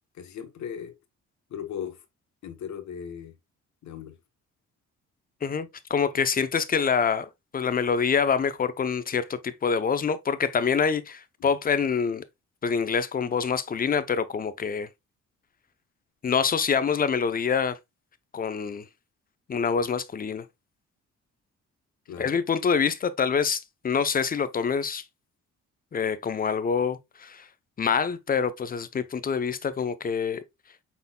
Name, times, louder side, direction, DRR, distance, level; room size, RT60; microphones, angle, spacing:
voice 1, 0.1-0.9 1.5-2.0 2.4-3.4 3.8-4.2 22.1-22.3, left 8 dB, 65° left, 1.1 m, -37 dB
voice 2, 5.4-12.2 12.6-14.9 16.2-17.8 18.3-18.8 19.5-20.4 22.2-25.0 25.9-27.5 27.8-30.4, left 6 dB, 30° left, 0.6 m, -26 dB
5.4 x 4.0 x 2.2 m
cardioid pair, 90°, 30 cm